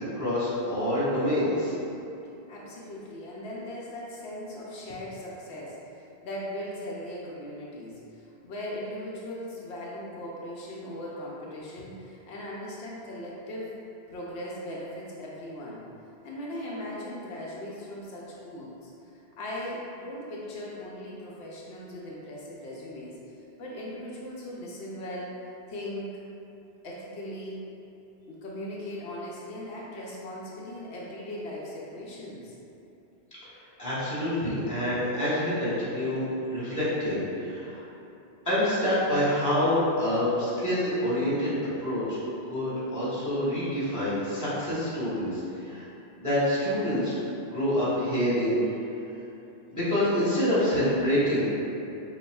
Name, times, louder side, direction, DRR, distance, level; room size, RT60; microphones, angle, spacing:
voice 1, 0.1-1.7 33.8-37.8 38.4-42.2 42.5-45.9 46.2-47.1 47.4-48.6 49.7-51.5, left 1 dB, 15° left, -10 dB, 1.4 m, -27 dB
voice 2, 2.5-13.8 14.1-15.8 16.2-18.9 19.4-23.1 23.6-25.4 25.7-26.2 26.8-27.6 28.3-32.5, left 1 dB, 85° left, -5 dB, 0.9 m, -39 dB
6.5 x 2.3 x 2.3 m, 2.9 s
omnidirectional pair, 1.1 m